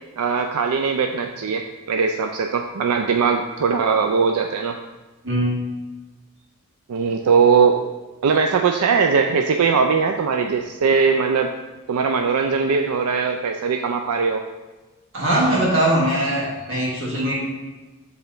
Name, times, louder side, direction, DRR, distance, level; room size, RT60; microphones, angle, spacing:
voice 1, 0.2-4.8 6.9-7.8 8.2-11.5 11.9-14.4, right 5 dB, 90° right, 4 dB, 0.4 m, -20 dB
voice 2, 5.2-5.6 15.1-17.4, right 1 dB, 55° right, -5 dB, 1.9 m, -21 dB
7.5 x 3.4 x 3.9 m, 1.2 s
head